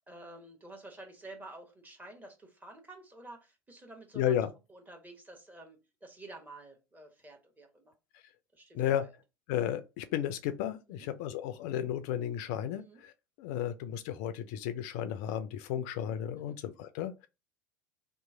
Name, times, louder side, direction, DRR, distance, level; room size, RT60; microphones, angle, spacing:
voice 1, 0.1-4.3 4.7-7.9 8.5-9.1 11.0-11.1 12.8-13.0 16.3-16.6, right 2 dB, 15° right, 1.1 m, -50 dB
voice 2, 4.2-4.5 8.1-8.2 8.7-9.1 9.5-13.1 13.4-17.3, left 10 dB, 55° left, 0.4 m, -33 dB
2.9 x 2.4 x 3.5 m
figure-of-eight pair, 70°, 11 cm